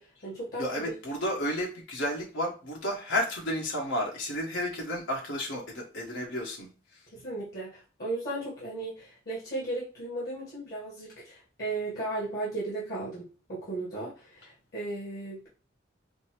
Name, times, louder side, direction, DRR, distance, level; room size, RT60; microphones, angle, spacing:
voice 1, 0.0-0.6 7.1-15.5, right 2 dB, 55° left, -7 dB, 1.5 m, -36 dB
voice 2, 0.6-6.7, left 1 dB, 90° left, -2 dB, 1.1 m, -32 dB
5.1 x 2.0 x 2.9 m, 0.36 s
head